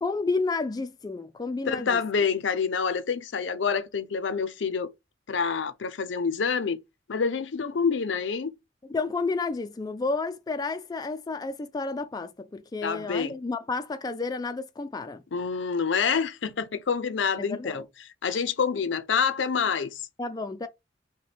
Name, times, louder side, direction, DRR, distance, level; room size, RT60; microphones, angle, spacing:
voice 1, 0.0-2.0 8.9-15.2 17.4-17.8 20.2-20.7, left 3 dB, 20° left, 0.3 m, -31 dB
voice 2, 1.7-4.9 5.3-6.8 7.1-8.5 12.8-13.3 15.3-17.8 18.2-20.0, left 6 dB, 80° left, 0.6 m, -27 dB
5.1 x 2.2 x 3.4 m
head